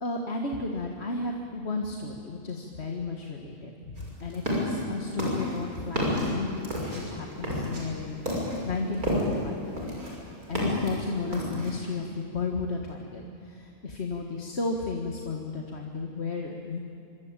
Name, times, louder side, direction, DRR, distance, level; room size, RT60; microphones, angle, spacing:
voice 1, 0.0-3.7 4.0-9.6 10.5-16.8, left 3 dB, 45° left, 2 dB, 1.9 m, -33 dB
sound 1, 4.0-4.8 5.2-9.4 9.8-10.9 11.3-11.8, equal, 80° right, 6.7 m, -30 dB
25.5 x 24.0 x 9.0 m, 2.7 s
omnidirectional pair, 1.5 m